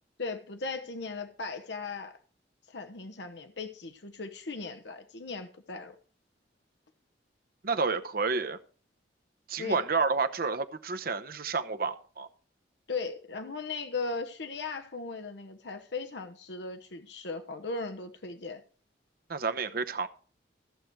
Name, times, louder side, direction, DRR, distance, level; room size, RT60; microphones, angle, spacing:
voice 1, 0.2-2.2 2.7-5.9 9.6-9.8 12.9-18.6, left 4 dB, 75° left, 1.0 m, -37 dB
voice 2, 7.6-8.6 9.5-12.3 19.3-20.1, right 4 dB, 55° right, 0.9 m, -30 dB
14.5 x 7.8 x 4.6 m
head